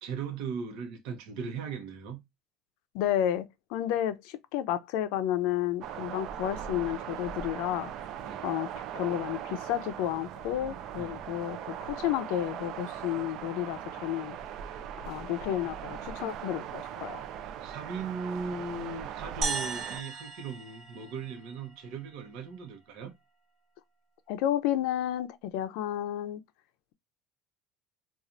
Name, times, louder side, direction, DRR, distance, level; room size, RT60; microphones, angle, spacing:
voice 1, 0.0-2.2 8.2-8.5 11.0-11.2 17.5-23.1, right 5 dB, 65° right, 0.9 m, -38 dB
voice 2, 2.9-7.9 8.4-14.4 15.1-17.3 24.3-26.4, left 12 dB, 75° left, 0.4 m, -31 dB
sound 1, 5.8-20.0, right 9 dB, 50° right, 0.4 m, -40 dB
sound 2, 19.4-21.9, right 4 dB, 35° right, 0.8 m, -36 dB
4.2 x 2.4 x 2.5 m
cardioid pair, 150°, 0 cm